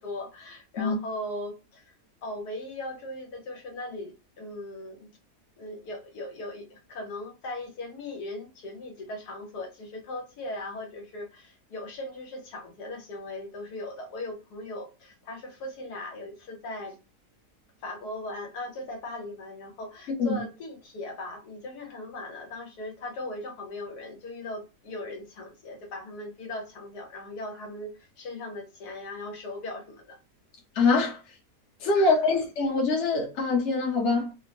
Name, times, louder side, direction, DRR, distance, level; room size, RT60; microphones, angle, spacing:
voice 1, 0.0-1.8 2.2-5.1 5.6-17.0 17.8-30.2 32.0-32.2, left 1 dB, 85° left, 1.5 m, -38 dB
voice 2, 20.1-20.4 30.7-31.2 31.8-34.3, left 3 dB, 50° left, 1.2 m, -24 dB
3.4 x 2.1 x 2.8 m
omnidirectional pair, 1.7 m